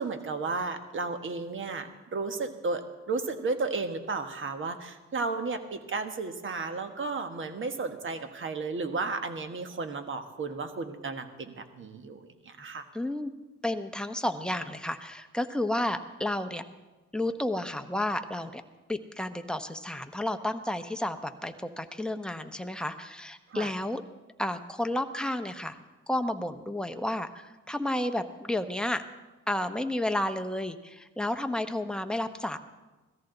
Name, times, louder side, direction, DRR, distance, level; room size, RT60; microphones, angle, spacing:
voice 1, 0.0-12.8 23.5-23.7, right 3 dB, 40° right, 8 dB, 1.4 m, -33 dB
voice 2, 12.9-13.3 13.6-16.6 17.1-18.6 18.9-24.0 24.4-25.8 26.1-29.0 29.5-32.6, left 1 dB, 5° left, 7 dB, 0.9 m, -31 dB
17.5 x 14.0 x 3.9 m, 1.2 s
cardioid pair, 90°, 30 cm